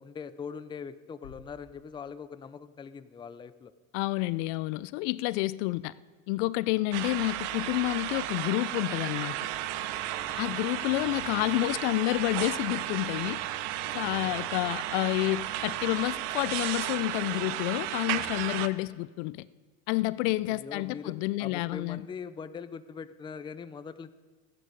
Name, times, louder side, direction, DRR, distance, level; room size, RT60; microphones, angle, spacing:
voice 1, 0.0-3.7 10.3-10.6 14.0-14.5 18.5-19.0 20.5-21.1 21.4-24.1, left 6 dB, 15° left, 12 dB, 0.4 m, -42 dB
sound 1, 1.2-3.0, left 6 dB, 85° left, 1.4 m, -56 dB
voice 2, 3.9-5.9 6.3-9.5 10.4-13.4 13.9-19.5 19.9-22.0, left 19 dB, 65° left, 18 dB, 0.5 m, -29 dB
sound 2, 6.9-18.7, right 14 dB, 65° right, 0.7 m, -34 dB
sound 3, 9.5-18.5, right 3 dB, 15° right, 3.1 m, -50 dB
14.0 x 10.0 x 5.1 m, 1.3 s
hypercardioid pair, 90°, 38 cm